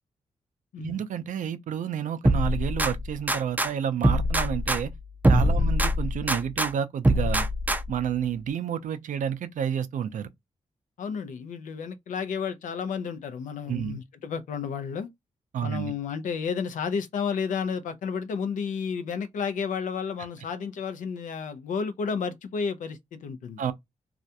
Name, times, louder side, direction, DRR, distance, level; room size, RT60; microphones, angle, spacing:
voice 1, 0.8-4.9 5.3-7.5 7.9-10.3 13.7-14.0 15.5-15.9 23.6-23.7, right 8 dB, 80° right, 0.4 m, -30 dB
sound 1, 2.2-3.7 4.0-6.7 7.0-8.1, equal, 15° right, 0.4 m, -24 dB
voice 2, 11.0-15.1 15.6-23.6, left 6 dB, 90° left, 0.5 m, -32 dB
2.4 x 2.1 x 2.7 m
cardioid pair, 55°, 13 cm